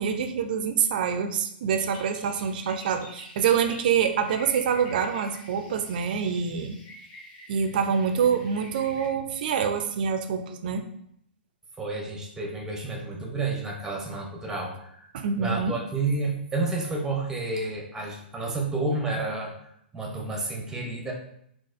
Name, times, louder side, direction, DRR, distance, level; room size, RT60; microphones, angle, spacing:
voice 1, 0.0-6.8 7.5-10.8 15.1-15.7, right 7 dB, 50° right, 7 dB, 0.4 m, -26 dB
sound 1, 1.7-9.1, left 1 dB, 35° left, 1.0 m, -48 dB
voice 2, 11.8-15.1 15.4-19.5 19.9-21.1, right 3 dB, 10° right, 1 dB, 0.7 m, -30 dB
3.9 x 2.4 x 2.5 m, 0.72 s
figure-of-eight pair, 110°, 6 cm